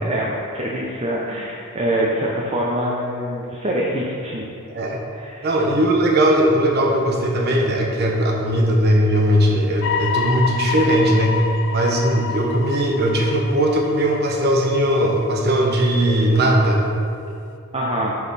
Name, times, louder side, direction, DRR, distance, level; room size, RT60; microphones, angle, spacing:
voice 1, 0.0-4.4 5.1-5.5 17.7-18.2, right 1 dB, 25° right, -4 dB, 0.7 m, -24 dB
voice 2, 5.4-11.4 11.7-16.8, right 1 dB, 45° right, 0 dB, 1.0 m, -18 dB
sound 1, 9.8-15.7 16.1-16.2, left 5 dB, 55° left, 0.3 m, -28 dB
10.5 x 4.1 x 4.1 m, 2.5 s
head